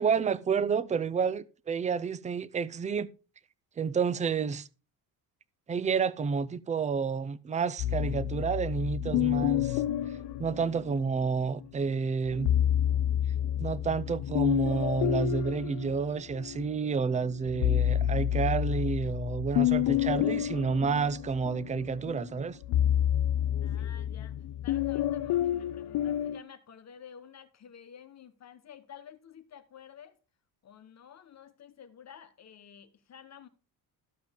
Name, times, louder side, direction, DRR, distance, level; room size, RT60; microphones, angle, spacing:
voice 1, 0.0-3.1 3.8-4.7 5.7-9.8 10.4-12.5 13.6-22.6, right 5 dB, 20° right, 0.5 m, -30 dB
sound 1, 7.8-11.3 12.3-16.7 17.1-26.4, left 11 dB, 75° left, 0.7 m, -29 dB
voice 2, 23.6-30.2 30.6-33.5, left 8 dB, 40° left, 1.2 m, -51 dB
13.5 x 5.2 x 5.2 m
cardioid pair, 145°, 41 cm